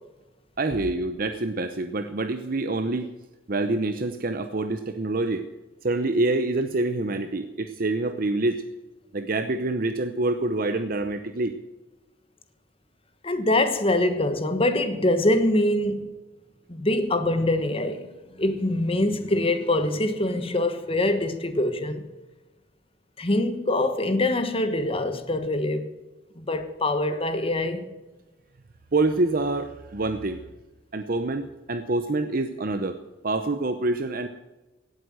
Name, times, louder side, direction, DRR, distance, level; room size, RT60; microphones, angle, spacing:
voice 1, 0.6-3.1 3.5-5.5 5.8-8.6 9.1-11.6 28.9-30.4 30.9-34.3, right 2 dB, 50° right, 0.8 m, -26 dB
voice 2, 13.2-16.1 16.7-18.1 18.4-22.0 23.2-25.9 26.4-27.8, left 1 dB, 30° left, 1.4 m, -24 dB
17.5 x 8.0 x 7.7 m
head